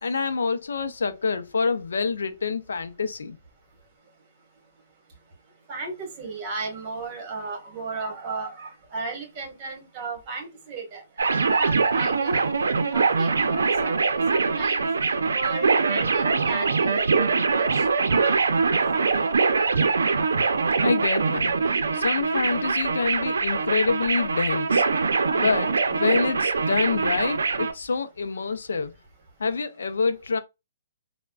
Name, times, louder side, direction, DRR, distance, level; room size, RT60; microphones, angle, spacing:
voice 1, 0.0-3.4 20.8-24.8 25.4-28.9 29.4-30.4, left 4 dB, 85° left, 0.4 m, -27 dB
voice 2, 5.7-12.4 12.9-17.8 18.1-18.4 18.7-19.2, right 4 dB, 30° right, 1.3 m, -35 dB
sound 1, 11.2-27.7, right 4 dB, 85° right, 0.5 m, -23 dB
3.3 x 2.1 x 2.2 m
hypercardioid pair, 155°, 0 cm